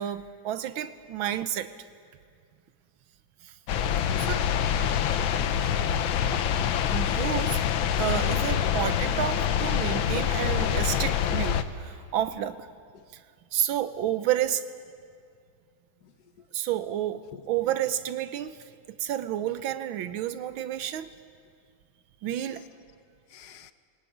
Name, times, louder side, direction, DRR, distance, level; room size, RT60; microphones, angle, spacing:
voice 1, 0.0-1.7 3.4-3.5 4.2-4.5 6.9-7.7 8.0-12.7 13.1-13.2 13.5-14.6 16.5-18.6 19.0-21.1 22.2-22.6, right 11 dB, 85° right, 1.6 m, -30 dB
sound 1, 3.7-11.6, left 9 dB, 85° left, 1.6 m, -26 dB
voice 2, 23.3-23.7, left 10 dB, 60° left, 1.3 m, -52 dB
20.5 x 18.5 x 9.3 m
omnidirectional pair, 2.1 m